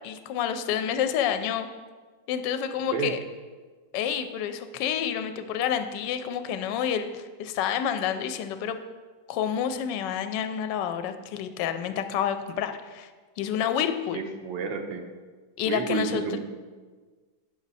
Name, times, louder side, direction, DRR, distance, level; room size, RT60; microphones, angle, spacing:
voice 1, 0.0-1.7 2.3-3.2 3.9-8.8 9.3-13.1 13.4-14.2 15.6-16.4, left 8 dB, 80° left, 9 dB, 1.2 m, -29 dB
voice 2, 14.1-15.1 15.7-16.4, right 6 dB, 90° right, 4 dB, 1.5 m, -30 dB
8.0 x 6.1 x 4.1 m, 1.4 s
omnidirectional pair, 2.0 m